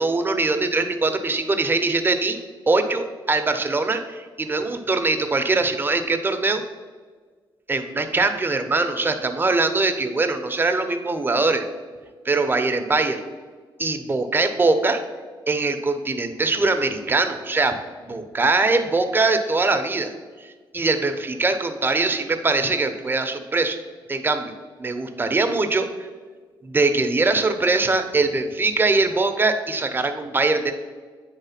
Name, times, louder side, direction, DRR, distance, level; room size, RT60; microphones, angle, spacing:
voice 1, 0.0-2.4 2.7-6.6 7.7-11.7 12.2-13.2 13.8-15.0 15.5-17.8 18.1-20.1 20.4-20.5 20.7-23.8 24.1-24.5 24.8-26.1 26.6-30.7, right 3 dB, 25° right, 7 dB, 0.7 m, -22 dB
9.1 x 3.2 x 5.8 m, 1.5 s
cardioid pair, 100°, 9 cm